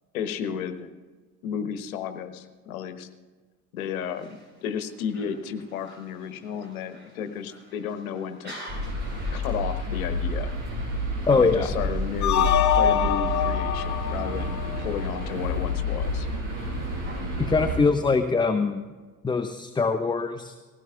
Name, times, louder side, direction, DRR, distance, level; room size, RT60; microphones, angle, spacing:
voice 1, 0.1-0.9 1.4-3.1 3.7-8.5 9.3-10.5 11.3-16.3, left 7 dB, 70° left, 9 dB, 1.1 m, -33 dB
sound 1, 3.8-17.2, equal, 25° right, 5.4 m, -50 dB
sound 2, 8.7-17.8, left 1 dB, 45° right, 5.2 m, -29 dB
voice 2, 11.3-11.7 17.4-18.8 19.2-20.5, left 4 dB, 10° left, 8 dB, 0.6 m, -23 dB
sound 3, 12.2-15.3, left 9 dB, 40° left, 0.8 m, -25 dB
19.5 x 16.5 x 2.4 m, 1.4 s
figure-of-eight pair, 55°, 44 cm